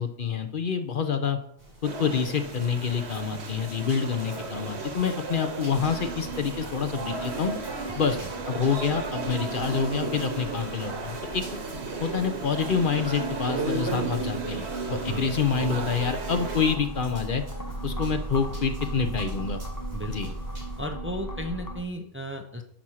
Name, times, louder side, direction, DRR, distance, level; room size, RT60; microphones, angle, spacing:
voice 1, 0.0-1.4 1.8-7.5 7.9-8.2 8.5-11.4 12.0-17.4 17.8-19.6 20.1-20.3, left 6 dB, 55° left, 8 dB, 1.0 m, -27 dB
sound 1, 1.6-20.8, right 1 dB, 60° right, 4.1 m, -46 dB
sound 2, 1.8-16.8, right 3 dB, 85° right, 1.5 m, -34 dB
sound 3, 5.7-21.8, right 2 dB, 20° left, 1.0 m, -38 dB
voice 2, 14.9-15.6 19.9-20.2 20.8-22.6, equal, 15° right, 4 dB, 0.7 m, -35 dB
10.0 x 4.4 x 6.3 m, 0.68 s
omnidirectional pair, 1.1 m